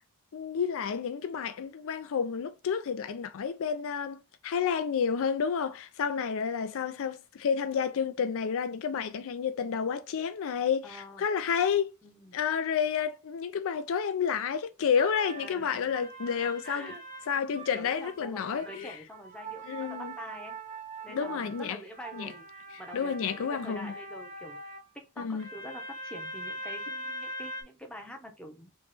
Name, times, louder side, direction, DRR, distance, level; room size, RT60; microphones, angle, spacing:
voice 1, 0.3-11.9 12.3-16.9 17.3-19.0 19.7-20.1 21.1-21.8 22.1-22.3 22.9-23.9 25.2-25.4, left 7 dB, 60° left, 0.4 m, -30 dB
voice 2, 10.8-11.3 12.0-12.4 15.3-16.1 16.6-17.0 17.7-20.5 21.0-28.7, equal, 5° left, 0.8 m, -46 dB
sound 1, 14.9-18.2 18.5-24.8 25.4-27.6, right 2 dB, 35° right, 0.8 m, -42 dB
3.1 x 3.1 x 3.2 m
head